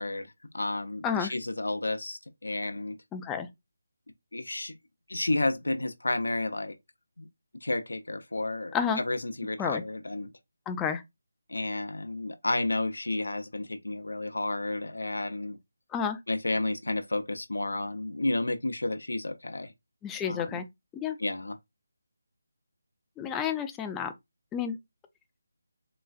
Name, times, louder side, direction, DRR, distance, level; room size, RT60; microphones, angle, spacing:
voice 1, 0.0-3.0 4.3-4.8 5.1-6.8 7.2-7.3 7.6-10.3 11.5-15.6 16.3-19.7 20.2-20.6 21.2-21.6, left 2 dB, 80° left, 0.5 m, -31 dB
voice 2, 1.0-1.3 3.1-3.5 8.7-9.0 9.6-9.8 10.7-11.0 15.9-16.2 20.0-20.7 20.9-21.2 23.2-24.1 24.5-24.8, left 7 dB, 10° left, 0.3 m, -30 dB
3.8 x 2.3 x 2.4 m
figure-of-eight pair, 160°, 0 cm